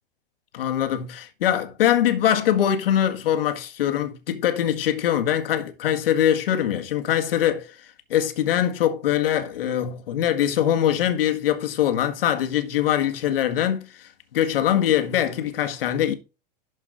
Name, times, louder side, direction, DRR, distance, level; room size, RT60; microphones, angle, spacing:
voice 1, 0.5-7.7 8.1-16.1, left 10 dB, 70° left, 1.8 m, -23 dB
12.0 x 5.3 x 3.9 m
hypercardioid pair, 115°, 29 cm